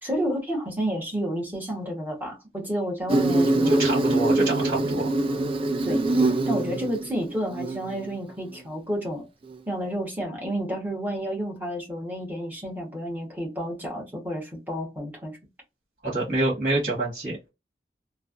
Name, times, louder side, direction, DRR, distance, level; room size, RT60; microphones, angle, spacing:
voice 1, 0.0-3.7 5.8-6.0 6.5-9.2 9.7-15.4, equal, 10° right, 1.1 m, -30 dB
Insect, 3.1-8.1, right 2 dB, 30° right, 0.3 m, -24 dB
voice 2, 3.7-5.1 16.0-17.5, right 2 dB, 50° right, 1.7 m, -26 dB
3.2 x 2.1 x 2.5 m
head